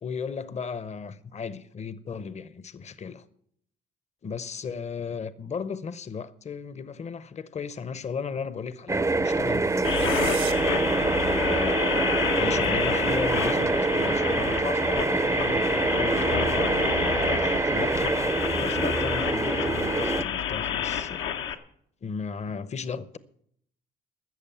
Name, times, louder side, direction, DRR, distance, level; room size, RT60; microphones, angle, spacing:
voice 1, 0.0-3.2 4.2-10.2 11.2-18.2 18.6-21.3 22.0-23.2, left 6 dB, 35° left, 0.7 m, -35 dB
sound 1, 8.9-20.2, right 3 dB, 15° right, 0.5 m, -25 dB
sound 2, 9.6-10.5, right 10 dB, 80° right, 1.5 m, -37 dB
sound 3, 9.8-21.5, left 8 dB, 85° left, 1.0 m, -30 dB
14.0 x 6.8 x 8.6 m
cardioid pair, 90°, 20 cm